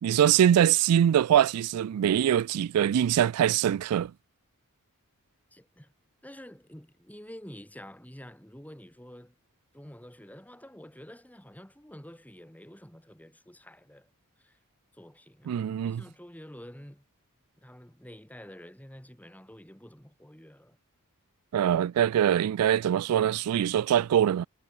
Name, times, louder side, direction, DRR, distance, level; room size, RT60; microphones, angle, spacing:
voice 1, 0.0-4.1 15.5-16.0 21.5-24.5, right 10 dB, 80° right, 0.3 m, -23 dB
voice 2, 5.5-5.9 6.2-9.4 9.7-14.1 14.4-14.6 14.9-17.0 17.6-20.8, equal, 5° left, 5.3 m, -48 dB
head